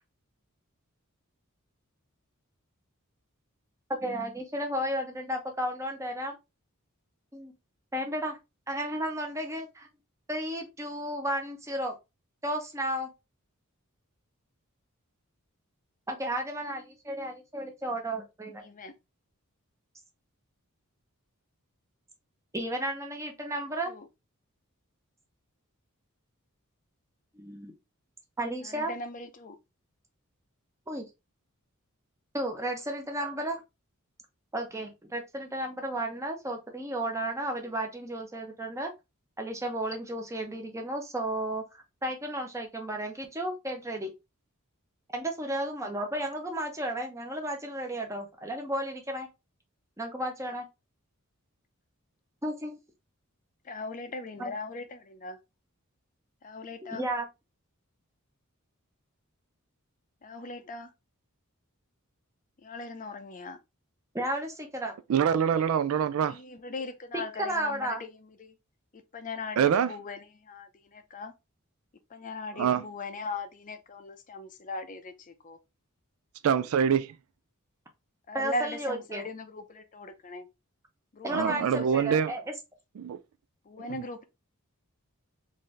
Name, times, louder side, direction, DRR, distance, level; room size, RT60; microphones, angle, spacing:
voice 1, 4.0-6.4 7.3-7.5 7.9-8.4 8.7-9.9 10.3-11.9 12.4-13.1 16.1-18.6 22.5-23.9 27.3-27.7 28.4-28.9 30.9-31.0 32.3-33.6 34.5-38.9 39.4-44.1 45.1-49.3 50.0-50.6 52.4-52.7 54.4-54.5 56.9-57.3 64.1-64.9 67.1-68.0 78.3-79.3 81.2-82.5, right 1 dB, 15° right, 0.8 m, -33 dB
voice 2, 18.6-18.9 23.9-24.1 28.6-29.6 53.6-55.4 56.4-57.0 60.2-60.9 62.6-63.6 66.3-68.6 68.9-71.3 72.1-75.6 78.3-80.5 81.1-81.9 82.2-82.3 83.7-84.2, left 2 dB, 35° left, 0.5 m, -39 dB
voice 3, 65.1-66.4 69.6-69.9 72.6-72.8 76.4-77.1 81.3-82.3 83.0-83.2, right 7 dB, 70° right, 0.3 m, -25 dB
3.8 x 2.6 x 3.2 m
head